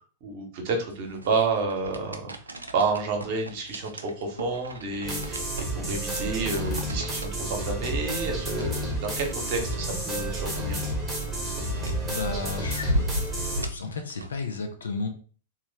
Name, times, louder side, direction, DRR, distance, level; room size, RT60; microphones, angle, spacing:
voice 1, 0.2-2.3 2.7-10.8, right 3 dB, 45° right, 3 dB, 0.9 m, -30 dB
sound 1, 0.9-14.6, equal, 80° right, 0.4 m, -37 dB
sound 2, 5.0-13.7, right 1 dB, 15° right, 1.0 m, -31 dB
voice 2, 12.0-13.1 13.7-15.1, left 4 dB, 70° left, 6 dB, 0.5 m, -33 dB
3.1 x 2.3 x 3.3 m, 0.42 s
figure-of-eight pair, 95°, 0 cm